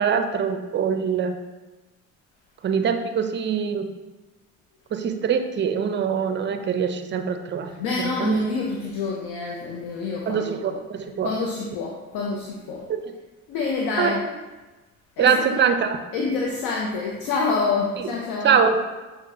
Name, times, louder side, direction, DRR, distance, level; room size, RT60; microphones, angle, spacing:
voice 1, 0.0-1.3 2.6-3.9 4.9-7.7 8.2-8.3 10.3-11.3 12.9-13.0 14.0-14.2 15.2-16.0 18.4-18.9, right 6 dB, 30° right, 7 dB, 0.4 m, -23 dB
voice 2, 7.8-10.6 11.2-12.9 13.5-14.2 15.2-15.6 16.1-18.6, left 4 dB, 70° left, -2 dB, 0.6 m, -27 dB
6.1 x 2.2 x 2.6 m, 1.2 s
hypercardioid pair, 55°, 42 cm